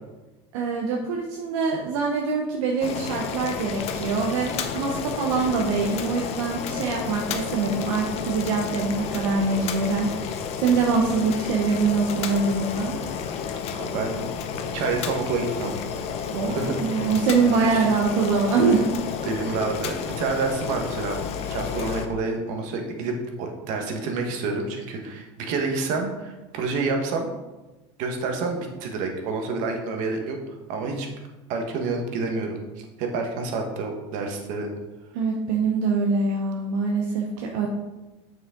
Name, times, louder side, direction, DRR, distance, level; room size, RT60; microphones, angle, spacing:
voice 1, 0.5-13.0 16.3-18.8 35.1-37.7, right 4 dB, 75° right, 0 dB, 1.0 m, -24 dB
Boiling, 2.8-22.1, left 7 dB, 45° left, 0.7 m, -31 dB
voice 2, 13.7-14.2 14.7-15.7 16.5-16.8 17.6-17.8 19.2-21.2 21.5-27.3 28.0-31.1 31.5-34.7, right 4 dB, 60° right, 3 dB, 1.5 m, -28 dB
7.3 x 6.4 x 3.8 m, 1.1 s
supercardioid pair, 135°, 15 cm